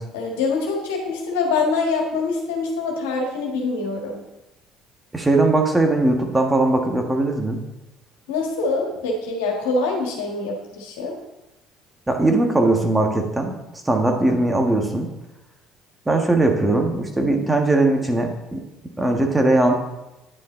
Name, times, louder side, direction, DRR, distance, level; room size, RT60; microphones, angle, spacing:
voice 1, 0.1-4.2 8.3-11.2, left 3 dB, 75° left, 1 dB, 1.7 m, -24 dB
voice 2, 5.1-7.6 12.1-13.6 13.8-15.1 16.0-18.6 19.0-19.7, right 2 dB, 15° right, 3 dB, 1.6 m, -19 dB
9.9 x 5.6 x 3.9 m, 0.98 s
hypercardioid pair, 55°, 0 cm